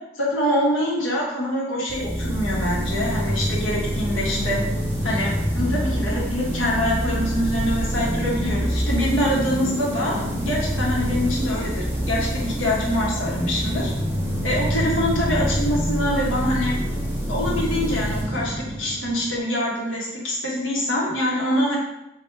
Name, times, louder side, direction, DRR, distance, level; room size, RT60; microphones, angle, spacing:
voice 1, 0.2-4.6 5.0-13.9 14.4-16.8 17.3-21.8, equal, 85° left, -4 dB, 0.9 m, -25 dB
sound 1, 1.9-19.4, equal, 10° right, 0.4 m, -26 dB
3.2 x 2.2 x 3.1 m, 0.89 s
head